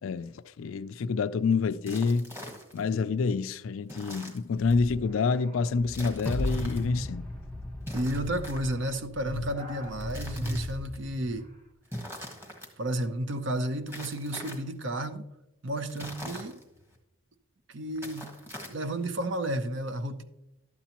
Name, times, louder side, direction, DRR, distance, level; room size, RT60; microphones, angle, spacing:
voice 1, 0.0-2.3 2.7-7.3, left 4 dB, 70° left, 0.4 m, -28 dB
sound 1, 1.8-2.9 3.9-4.8 5.9-6.8 7.8-9.0 9.8-11.0 11.8-12.7 13.9-14.8 15.8-17.0 17.9-19.1, equal, 10° right, 1.3 m, -43 dB
sound 2, 4.6-11.5, equal, 35° right, 1.2 m, -39 dB
sound 3, 6.3-9.5, left 1 dB, 5° left, 0.5 m, -35 dB
voice 2, 7.9-11.5 12.8-15.3 15.6-16.6 17.7-18.3 18.7-20.2, right 1 dB, 60° right, 0.7 m, -32 dB
12.0 x 8.1 x 2.9 m
head